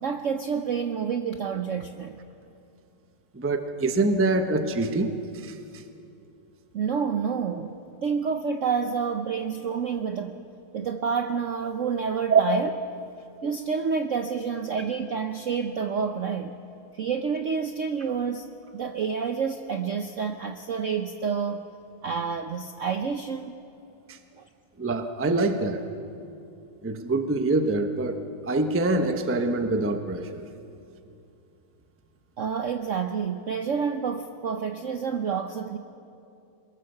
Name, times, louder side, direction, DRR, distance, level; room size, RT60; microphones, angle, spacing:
voice 1, 0.0-2.2 6.7-7.8 8.0-10.4 10.7-12.7 13.4-16.5 16.9-18.5 18.7-21.6 22.0-23.5 24.4-24.5 32.4-35.8, right 6 dB, 65° right, 7 dB, 0.8 m, -28 dB
voice 2, 3.3-5.6 12.3-12.4 24.1-24.2 24.8-25.8 26.8-30.4, right 3 dB, 15° right, 7 dB, 0.5 m, -25 dB
23.0 x 21.0 x 6.8 m, 2.7 s
omnidirectional pair, 2.2 m